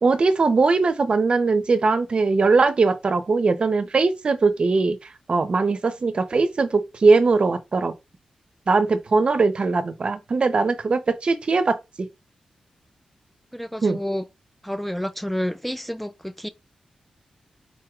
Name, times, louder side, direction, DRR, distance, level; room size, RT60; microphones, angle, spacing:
voice 1, 0.0-7.9 8.7-12.1 13.8-14.0, right 4 dB, 50° right, 0.7 m, -20 dB
voice 2, 13.5-14.2 14.6-16.5, equal, 5° left, 0.4 m, -29 dB
4.5 x 4.2 x 2.4 m
cardioid pair, 70°, 2 cm